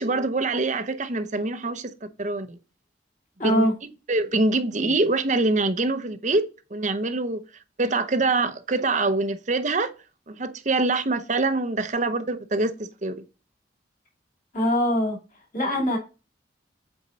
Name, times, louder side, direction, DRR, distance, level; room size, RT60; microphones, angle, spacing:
voice 1, 0.0-1.9 2.2-2.6 3.4-3.7 4.1-7.4 7.8-9.9 10.3-13.1, right 2 dB, 40° right, 0.8 m, -24 dB
voice 2, 3.4-3.7 14.5-15.2 15.5-16.0, equal, 45° left, 2.5 m, -22 dB
8.3 x 4.5 x 4.1 m
head